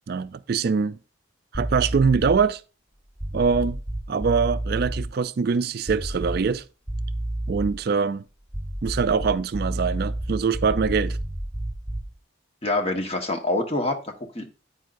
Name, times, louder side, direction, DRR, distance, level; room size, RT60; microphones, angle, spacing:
voice 1, 0.1-1.0 1.5-2.6 3.3-3.8 4.1-6.7 7.5-8.2 8.8-11.2, right 5 dB, 55° right, 0.4 m, -23 dB
sound 1, 1.5-2.5 3.2-5.1 5.9-6.6 6.9-7.8 8.5-12.2, right 1 dB, ahead, 1.0 m, -30 dB
voice 2, 12.6-14.5, left 2 dB, 30° left, 1.2 m, -26 dB
9.2 x 9.2 x 2.6 m
head